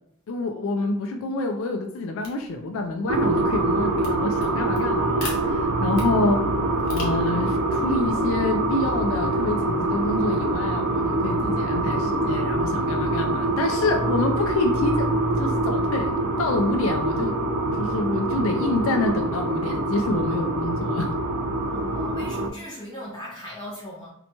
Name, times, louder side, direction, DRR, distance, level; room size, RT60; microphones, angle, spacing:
voice 1, 0.3-6.4 6.9-15.1 15.4-16.1 16.4-17.3 17.7-21.1, left 2 dB, 70° left, 4 dB, 0.3 m, -27 dB
sound 1, 2.2-10.1, left 2 dB, 90° left, 0.7 m, -44 dB
sound 2, 3.1-22.5, right 2 dB, 85° right, 0.3 m, -24 dB
voice 2, 21.7-24.1, equal, 20° left, -5 dB, 0.5 m, -37 dB
2.8 x 2.1 x 2.7 m, 0.75 s
head